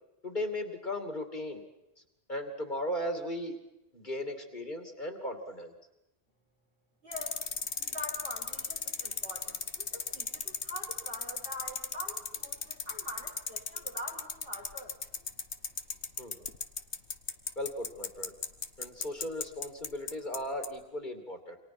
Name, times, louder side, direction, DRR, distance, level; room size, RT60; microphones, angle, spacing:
voice 1, 0.2-1.6 2.3-3.6 3.9-5.7 16.2-16.5 17.6-18.3 18.8-21.6, left 1 dB, 45° left, 6 dB, 2.9 m, -37 dB
voice 2, 7.0-7.5 7.8-14.9, left 1 dB, 60° right, -1 dB, 7.7 m, -44 dB
sound 1, 7.1-20.4 20.6-20.7, left 5 dB, 85° left, 1.6 m, -35 dB
28.5 x 26.0 x 6.1 m, 0.95 s
omnidirectional pair, 1.1 m